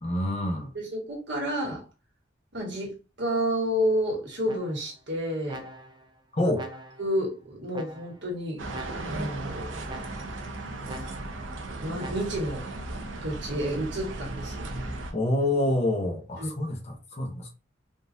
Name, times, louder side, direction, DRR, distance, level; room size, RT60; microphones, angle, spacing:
voice 1, 0.0-0.7 6.3-6.7 15.1-17.5, left 1 dB, 35° left, 0.9 m, -27 dB
voice 2, 0.7-1.8 2.5-2.9 3.2-5.6 6.4-6.5 7.0-8.6 9.1-9.7 11.7-12.7 13.2-15.0 16.4-16.5, equal, 65° right, 1.4 m, -30 dB
sound 1, 4.4-5.0 5.5-6.1 6.5-7.2 7.7-8.3 8.7-9.3 9.9-10.5 10.9-11.5 12.0-12.6, right 1 dB, 25° right, 0.4 m, -43 dB
sound 2, 8.6-15.1, right 2 dB, 80° right, 0.7 m, -36 dB
3.8 x 2.4 x 2.6 m
head